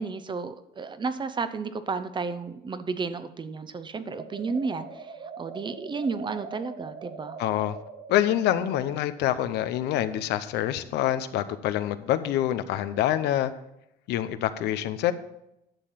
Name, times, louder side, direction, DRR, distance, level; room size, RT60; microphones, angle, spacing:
voice 1, 0.0-7.4, right 4 dB, 25° right, 12 dB, 0.7 m, -32 dB
sound 1, 4.1-9.0, right 5 dB, 45° right, 3.2 m, -42 dB
voice 2, 7.4-7.8 8.1-13.5 14.1-15.1, left 12 dB, 85° left, 12 dB, 0.7 m, -26 dB
10.5 x 6.7 x 5.7 m, 0.84 s
cardioid pair, 110°, 17 cm